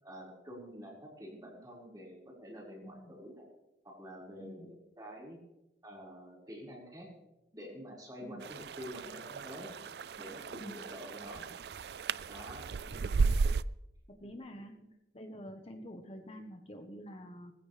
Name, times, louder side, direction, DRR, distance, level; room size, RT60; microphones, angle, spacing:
voice 1, 0.0-3.5 3.8-5.4 5.8-7.1 7.5-9.7 10.2-11.5 12.3-12.7 14.4-14.5, equal, 20° right, -3 dB, 5.2 m, -48 dB
voice 2, 2.8-3.1 4.4-4.7 8.2-8.4 10.5-10.8 12.9-13.2 14.1-14.8 15.1-17.5, equal, 35° left, 4 dB, 1.2 m, -47 dB
sound 1, 8.4-13.6, right 4 dB, 65° right, 0.4 m, -34 dB
19.5 x 15.5 x 3.4 m, 0.95 s
head